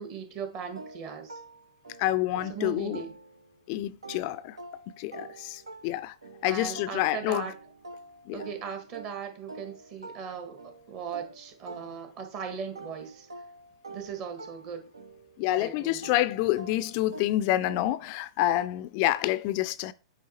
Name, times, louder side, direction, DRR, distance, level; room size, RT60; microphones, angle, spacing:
voice 1, 0.0-1.4 2.5-3.1 6.4-7.5 8.3-13.3 13.9-14.9 15.6-16.1, right 7 dB, 40° right, 1.5 m, -38 dB
sound 1, 0.8-3.6 4.0-12.4 12.8-18.2, right 2 dB, 80° right, 0.8 m, -47 dB
voice 2, 2.0-3.0 3.7-4.6 5.0-6.1 6.4-7.5 8.3-8.4 15.4-19.9, left 14 dB, 45° left, 0.3 m, -28 dB
8.3 x 2.9 x 4.2 m
figure-of-eight pair, 105°, 3 cm